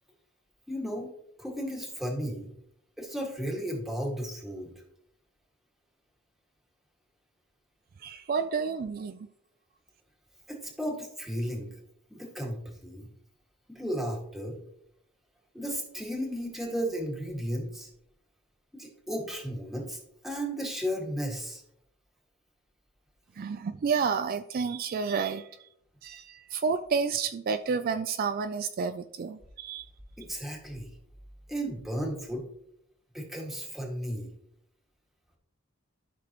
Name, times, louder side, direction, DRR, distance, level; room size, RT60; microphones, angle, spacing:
voice 1, 0.7-1.1 1.4-2.5 3.0-4.7 10.5-11.7 12.1-13.1 13.7-14.6 15.5-17.9 18.8-21.6 30.2-30.9 31.5-32.4 33.1-34.3, equal, ahead, -1 dB, 1.9 m, -34 dB
voice 2, 8.0-9.3 23.4-25.5 26.0-29.9, right 5 dB, 45° right, 10 dB, 0.4 m, -30 dB
12.5 x 6.0 x 3.0 m, 0.75 s
head